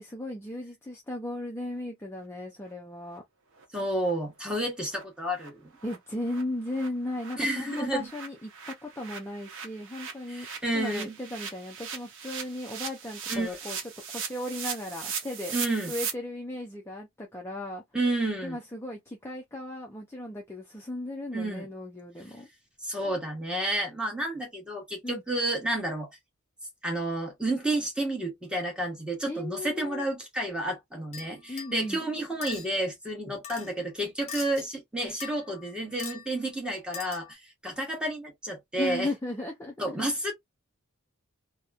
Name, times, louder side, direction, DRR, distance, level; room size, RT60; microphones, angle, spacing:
voice 1, 0.0-3.2 5.8-15.6 15.9-17.8 18.4-22.5 25.0-25.2 29.3-30.1 31.5-32.0 38.8-40.0, left 1 dB, 10° left, 0.4 m, -36 dB
sound 1, 3.1-3.2 3.6-3.7 4.0-4.1 4.5-4.6 4.9-5.0 5.3-5.5 5.8-6.0 6.2-16.1, right 6 dB, 55° right, 0.7 m, -39 dB
voice 2, 3.7-5.7 7.4-8.1 10.3-11.2 13.3-13.6 15.5-15.9 17.9-18.6 21.3-21.7 22.8-26.1 26.8-39.1 39.8-40.3, right 1 dB, 5° right, 0.9 m, -31 dB
sound 2, 31.1-31.8 32.4-32.7 33.4-33.7 34.3-34.6 35.2-35.7 36.0-36.3 36.9-37.3, left 7 dB, 30° left, 0.8 m, -40 dB
2.9 x 2.0 x 2.3 m
head